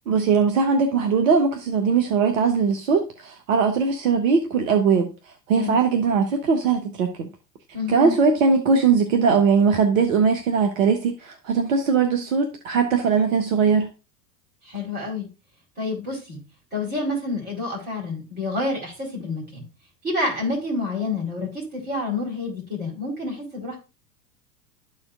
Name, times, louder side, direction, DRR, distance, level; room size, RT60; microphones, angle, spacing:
voice 1, 0.1-5.1 5.5-7.3 7.9-13.9, right 5 dB, 55° right, 1.1 m, -20 dB
voice 2, 7.7-8.2 14.6-15.3 15.8-16.4 16.7-19.6 20.0-23.8, left 2 dB, 20° right, 4.1 m, -28 dB
13.0 x 4.4 x 2.4 m
figure-of-eight pair, 95°, 49 cm